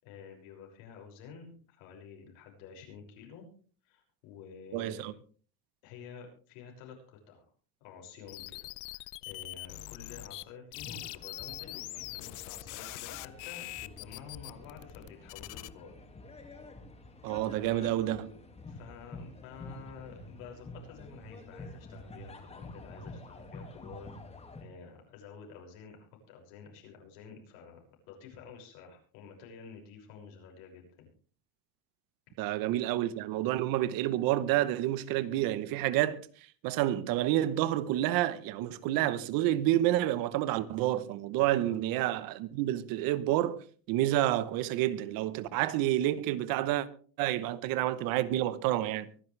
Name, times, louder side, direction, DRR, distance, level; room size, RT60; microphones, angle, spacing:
voice 1, 0.0-3.5 3.8-5.1 5.8-7.4 7.8-15.9 17.5-17.8 18.7-27.8 28.1-31.1 41.7-41.8, left 6 dB, 80° left, 6.2 m, -50 dB
voice 2, 4.7-5.1 17.2-18.3 32.4-36.2 36.6-43.6 43.9-46.9 47.2-49.1, right 14 dB, 60° right, 1.1 m, -29 dB
sound 1, 8.3-10.4 10.7-15.7, left 20 dB, 50° left, 0.7 m, -43 dB
sound 2, 10.7-24.6, left 2 dB, 15° left, 2.1 m, -48 dB
24.0 x 11.0 x 3.4 m
cardioid pair, 155°, 40 cm